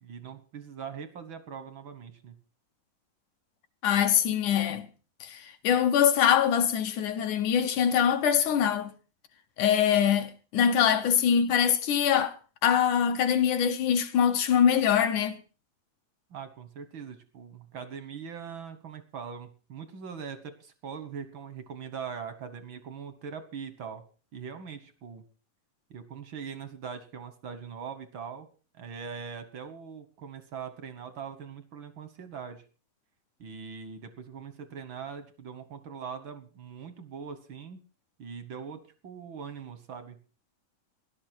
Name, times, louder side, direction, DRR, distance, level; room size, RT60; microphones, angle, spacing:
voice 1, 0.0-2.4 16.3-24.0 24.3-25.2 25.9-28.5 28.7-32.6 33.4-37.8 38.2-40.2, right 6 dB, 65° right, 1.2 m, -41 dB
voice 2, 3.8-4.9 5.2-8.9 9.6-12.4 12.6-15.4, left 8 dB, 70° left, 2.2 m, -23 dB
18.5 x 11.5 x 4.5 m
omnidirectional pair, 4.1 m